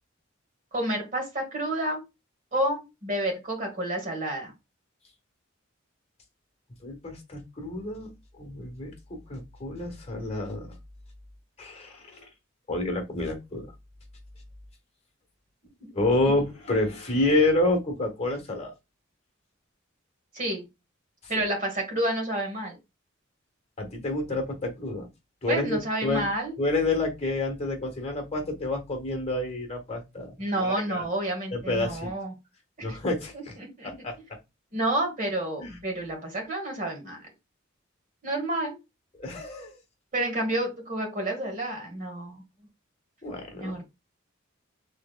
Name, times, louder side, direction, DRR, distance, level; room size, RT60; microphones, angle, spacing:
voice 1, 0.7-2.0 2.5-4.5 15.8-16.1 20.3-20.6 21.3-22.8 25.5-26.5 30.4-32.3 32.8-33.0 33.3-34.1 34.7-37.2 38.2-38.8 40.1-42.4 43.6-43.8, right 1 dB, 40° right, 1 dB, 1.7 m, -30 dB
voice 2, 6.8-10.7 11.6-12.3 12.7-13.7 15.9-18.7 21.3-21.4 23.8-25.1 25.4-26.3 26.6-31.0 31.5-32.1 32.8-33.5 33.8-34.1 35.6-35.8 39.2-39.8 43.2-43.8, left 2 dB, 30° left, 4 dB, 1.2 m, -29 dB
4.4 x 3.5 x 2.2 m, 0.23 s
head